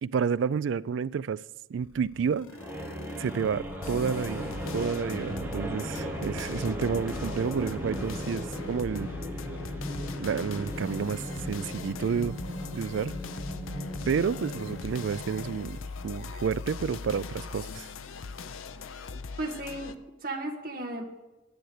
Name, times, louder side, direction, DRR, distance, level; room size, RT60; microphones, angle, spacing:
voice 1, 0.0-1.4 1.7-2.5 3.2-4.4 4.7-9.1 10.2-12.4 12.7-13.2 14.1-15.8 16.0-17.9, right 6 dB, 70° right, 0.3 m, -30 dB
sound 1, 1.8-19.9, left 4 dB, 90° left, 0.6 m, -41 dB
sound 2, 2.5-15.8, equal, 10° right, 1.5 m, -37 dB
voice 2, 19.4-21.0, right 2 dB, 45° right, 1.5 m, -35 dB
10.5 x 7.8 x 6.6 m
head